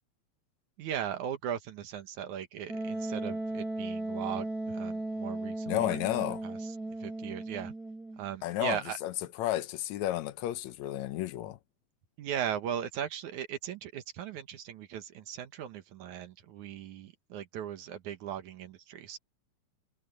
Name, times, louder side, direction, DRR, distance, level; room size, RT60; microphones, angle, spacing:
voice 1, 0.8-6.0 6.4-7.7 8.2-9.0 12.2-19.2, right 9 dB, 80° right, 2.6 m, -38 dB
Wind instrument woodwind instrument, 2.7-8.2, right 2 dB, 30° right, 4.8 m, -36 dB
voice 2, 5.7-6.4 8.4-9.1 9.4-11.6, left 14 dB, 75° left, 2.1 m, -32 dB
omnidirectional pair, 3.4 m